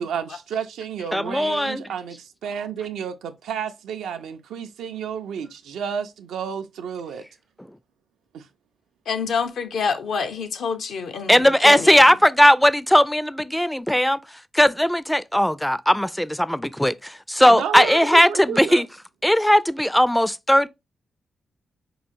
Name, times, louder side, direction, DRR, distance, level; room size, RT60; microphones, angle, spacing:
voice 1, 0.0-7.2 8.3-8.5 17.5-18.8, right 7 dB, 80° right, 0.4 m, -31 dB
voice 2, 1.1-1.8 11.3-14.2 14.5-18.9 19.2-20.7, equal, 5° left, 0.3 m, -18 dB
voice 3, 9.1-12.0, left 5 dB, 75° left, 0.6 m, -27 dB
4.6 x 2.4 x 2.6 m
supercardioid pair, 45°, 0 cm